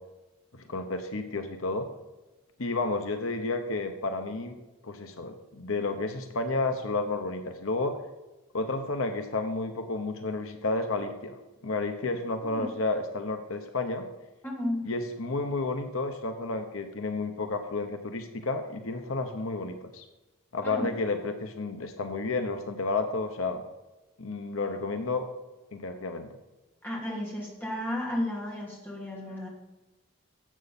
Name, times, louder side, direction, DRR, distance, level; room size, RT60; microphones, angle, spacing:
voice 1, 0.7-1.9 2.6-4.5 4.8-8.0 8.5-11.4 11.6-14.0 14.9-20.0 20.5-23.6 24.2-25.2 25.7-26.3, left 3 dB, 75° left, 6 dB, 1.0 m, -31 dB
voice 2, 14.4-14.9 20.6-20.9 26.8-29.5, left 1 dB, 10° left, -4 dB, 2.8 m, -33 dB
12.5 x 8.0 x 4.3 m, 1.1 s
head